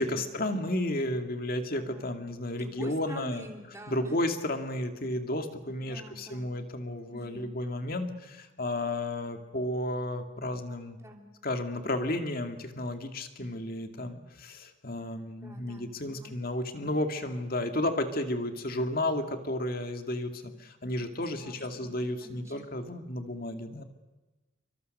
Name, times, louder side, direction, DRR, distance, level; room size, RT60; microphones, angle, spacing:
voice 1, 0.0-3.4 3.9-11.0 11.4-23.8, left 1 dB, 45° left, 6 dB, 2.1 m, -32 dB
voice 2, 1.8-2.2 2.6-4.2 5.8-6.5 7.1-7.5 11.0-11.3 15.4-16.4 21.1-22.6, equal, 15° right, 2 dB, 3.2 m, -47 dB
28.5 x 24.0 x 6.7 m, 1.1 s
head